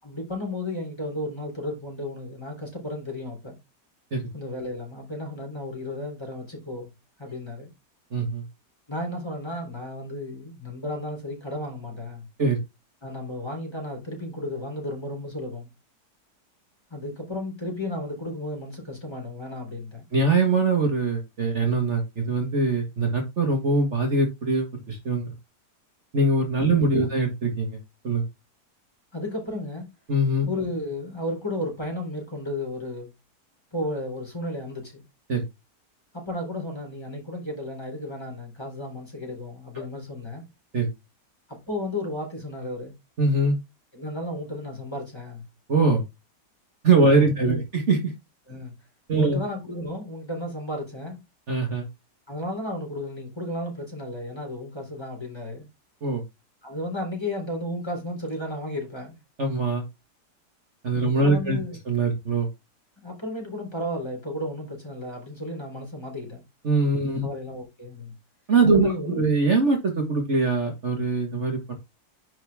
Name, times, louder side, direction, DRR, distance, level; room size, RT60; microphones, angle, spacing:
voice 1, 0.0-3.5 4.3-6.9 7.2-7.7 8.9-12.3 13.0-15.7 16.9-20.0 27.0-27.1 29.1-29.9 30.5-33.1 33.7-35.0 36.1-40.4 41.5-42.9 43.9-45.5 47.1-47.6 48.5-48.7 49.2-51.2 52.3-55.7 56.6-59.2 61.0-61.8 63.0-66.4 67.0-68.1 68.7-69.2, left 1 dB, 15° left, 3.9 m, -33 dB
voice 2, 8.1-8.4 12.4-12.6 20.1-25.3 26.1-27.7 28.0-28.3 30.1-30.5 35.3-35.4 39.8-39.9 40.7-40.9 43.2-43.6 45.7-46.0 46.8-48.0 49.1-49.4 51.5-51.9 56.0-56.2 59.4-59.8 60.8-61.6 61.9-62.5 66.6-67.3 68.5-71.7, right 3 dB, 45° right, 1.9 m, -22 dB
10.0 x 4.9 x 3.6 m
omnidirectional pair, 1.8 m